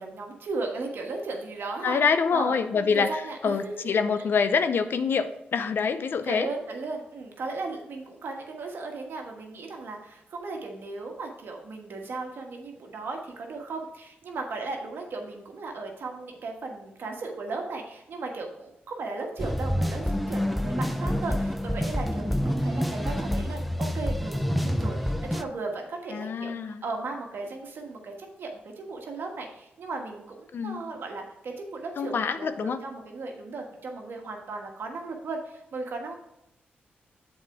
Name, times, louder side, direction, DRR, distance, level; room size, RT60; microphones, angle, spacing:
voice 1, 0.0-2.0 2.3-3.9 6.3-28.5 28.8-36.1, right 3 dB, 70° right, 2 dB, 1.4 m, -36 dB
voice 2, 1.8-6.5 26.1-26.8 30.5-30.8 32.0-32.8, left 5 dB, 65° left, 11 dB, 0.5 m, -26 dB
sound 1, 19.4-25.4, equal, ahead, 0.5 m, -27 dB
7.3 x 4.3 x 4.8 m, 0.82 s
cardioid pair, 70°, 4 cm